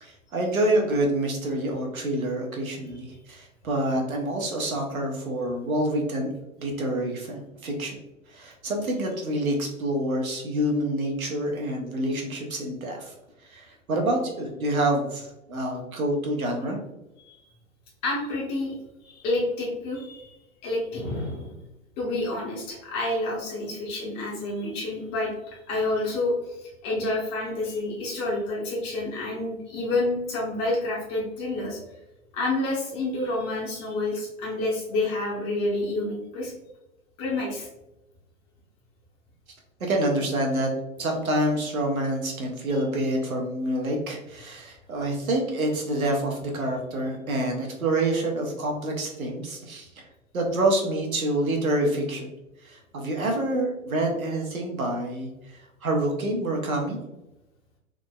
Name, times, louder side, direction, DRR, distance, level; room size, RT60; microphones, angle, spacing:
voice 1, 0.0-6.3 6.6-8.0 8.3-13.1 13.4-16.8 39.8-40.7 41.0-49.9 50.3-52.3 52.6-57.0, right 1 dB, 85° right, 1 dB, 0.9 m, -27 dB
voice 2, 18.0-18.8 19.0-20.3 20.6-21.5 22.0-31.8 32.3-36.5 37.2-37.7, left 2 dB, 25° left, -4 dB, 0.6 m, -29 dB
3.4 x 2.0 x 2.2 m, 0.92 s
figure-of-eight pair, 110°, 41 cm